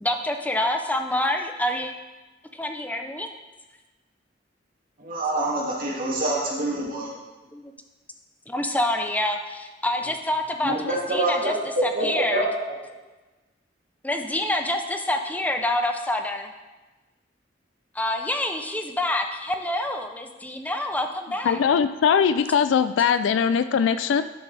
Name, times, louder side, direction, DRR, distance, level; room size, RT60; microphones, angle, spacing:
voice 1, 0.0-1.9 2.5-3.3 7.0-7.1 7.5-7.7 8.5-12.5 14.0-16.5 17.9-21.6 23.4-23.5, left 1 dB, 10° left, 4 dB, 0.6 m, -27 dB
voice 2, 5.0-7.1 10.6-12.5, right 2 dB, 50° right, -4 dB, 2.2 m, -26 dB
voice 3, 21.4-24.2, left 7 dB, 85° left, 13 dB, 0.3 m, -21 dB
11.0 x 6.9 x 3.3 m, 1.2 s
head